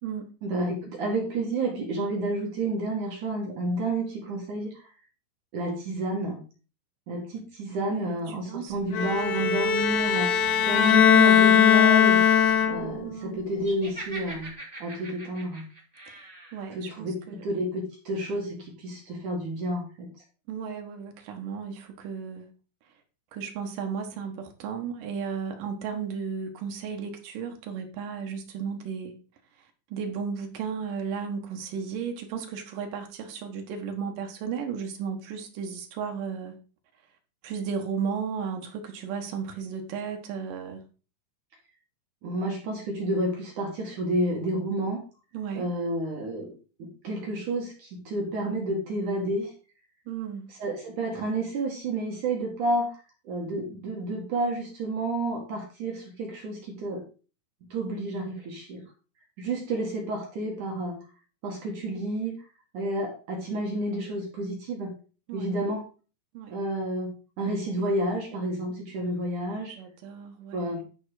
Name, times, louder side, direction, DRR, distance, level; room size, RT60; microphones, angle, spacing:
voice 1, 0.4-4.9 5.5-6.4 7.1-12.4 12.7-14.5 14.8-15.6 16.7-20.1 42.2-45.0 45.5-49.5 50.5-57.0 57.7-58.8 59.4-61.0 61.4-62.4 62.7-64.9 65.3-65.8 66.5-69.8 70.5-70.8, right 1 dB, 55° right, 2.4 m, -30 dB
voice 2, 7.8-8.2 8.5-8.9 13.0-13.4 16.1-16.2 16.5-17.4 20.5-22.5 23.3-29.1 29.9-36.6 37.4-40.8 45.3-45.7 50.1-50.5 65.3-65.5 66.3-66.6 69.5-70.8, right 6 dB, 75° right, 2.0 m, -34 dB
Bowed string instrument, 8.9-13.1, left 8 dB, 70° left, 2.8 m, -20 dB
Laughter, 13.6-16.6, right 2 dB, 10° right, 1.9 m, -42 dB
11.0 x 5.3 x 4.9 m
omnidirectional pair, 5.8 m